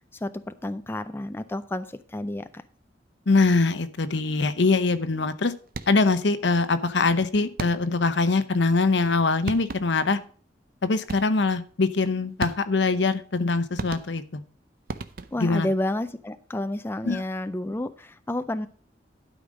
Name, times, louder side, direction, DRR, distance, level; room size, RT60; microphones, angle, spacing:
voice 1, 0.2-2.6 15.3-18.7, left 1 dB, 15° left, 10 dB, 0.4 m, -30 dB
voice 2, 3.3-5.5 5.9-10.2 10.8-14.4 15.4-15.7 17.0-17.2, left 3 dB, 70° left, 12 dB, 0.8 m, -23 dB
sound 1, 5.7-6.2 7.6-8.1 9.1-9.2 9.5-10.1 11.1-11.5 12.4-12.9 13.8-14.4 14.9-15.6, right 3 dB, 55° right, 0.6 m, -35 dB
12.0 x 5.1 x 5.1 m, 0.43 s
head